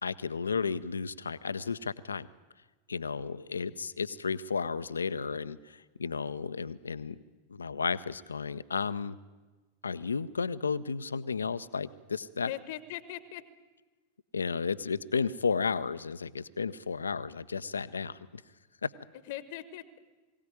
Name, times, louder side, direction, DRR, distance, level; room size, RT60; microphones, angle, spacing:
voice 1, 0.0-2.3 2.9-7.2 7.5-9.2 9.8-12.5 14.3-18.4 18.8-18.9, left 5 dB, 75° left, 14 dB, 0.6 m, -33 dB
voice 2, 12.4-13.4 19.3-20.0, left 13 dB, 50° left, 15 dB, 1.1 m, -40 dB
22.0 x 17.0 x 9.4 m, 1.3 s
figure-of-eight pair, 90°, 0 cm